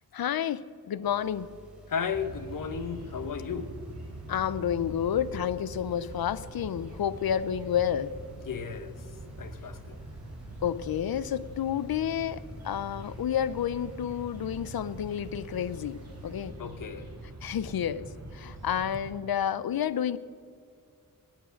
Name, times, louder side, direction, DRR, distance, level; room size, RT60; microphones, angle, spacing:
voice 1, 0.1-1.5 4.3-8.1 10.6-16.6 17.4-20.2, left 9 dB, 85° left, 16 dB, 0.6 m, -30 dB
sound 1, 1.0-16.5, equal, 5° right, 3.9 m, -52 dB
voice 2, 1.9-3.7 8.4-9.0 9.4-10.1 16.6-17.1, left 6 dB, 65° left, 11 dB, 1.0 m, -34 dB
sound 2, 2.1-19.1, right 1 dB, 45° right, 3.5 m, -44 dB
18.5 x 9.0 x 6.4 m, 2.4 s
wide cardioid pair, 140°, 35 cm